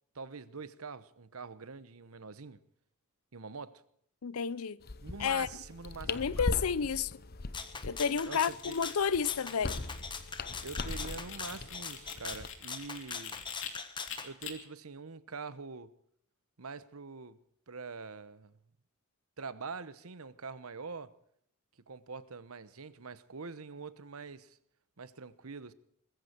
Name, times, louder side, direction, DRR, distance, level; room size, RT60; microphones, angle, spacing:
voice 1, 0.1-2.6 3.3-3.8 5.0-6.5 8.2-8.8 10.6-13.4 14.2-15.9 16.6-17.4 17.7-18.5 19.4-21.1 21.9-24.6 25.0-25.7, right 4 dB, 85° right, 1.0 m, -44 dB
voice 2, 4.2-4.8 5.2-5.5 6.1-7.1 7.8-9.8, left 6 dB, 90° left, 0.6 m, -31 dB
sound 1, 4.8-12.5, left 3 dB, 45° left, 0.9 m, -40 dB
Rattle (instrument), 7.5-14.3, left 5 dB, 20° left, 1.4 m, -42 dB
sound 2, 8.2-13.7 14.1-14.5, left 9 dB, 60° left, 2.8 m, -46 dB
21.0 x 14.5 x 4.5 m
head